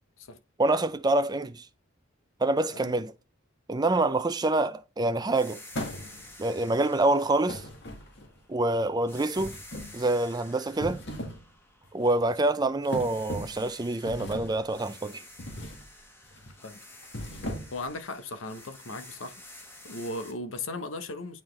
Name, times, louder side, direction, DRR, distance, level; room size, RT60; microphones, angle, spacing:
voice 1, 0.6-1.6 2.4-3.1 3.7-5.6 6.4-7.6 8.5-9.6 9.9-11.0 11.9-15.2, right 2 dB, 20° right, 0.5 m, -26 dB
sound 1, 5.3-8.6 9.1-12.4 12.8-20.3, left 1 dB, 10° left, 1.2 m, -50 dB
sound 2, 5.7-6.4 7.5-8.4 9.4-10.0 10.7-11.5 11.8-12.1 12.9-13.7 14.1-14.6 15.4-15.8 16.2-16.5 17.0-17.9, equal, 60° left, 1.8 m, -37 dB
voice 2, 17.7-19.4 19.8-21.4, left 2 dB, 80° left, 0.9 m, -37 dB
8.8 x 3.9 x 3.2 m
head